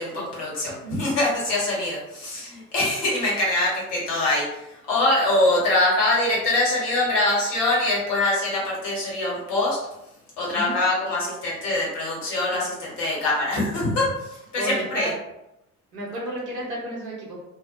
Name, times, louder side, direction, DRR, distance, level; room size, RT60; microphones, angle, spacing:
voice 1, 0.0-9.8 10.4-15.1, left 2 dB, 60° left, -5 dB, 1.2 m, -24 dB
voice 2, 14.6-15.2 15.9-17.4, right 1 dB, 90° right, -4 dB, 0.7 m, -32 dB
2.4 x 2.1 x 2.4 m, 0.85 s
figure-of-eight pair, 45°, 46 cm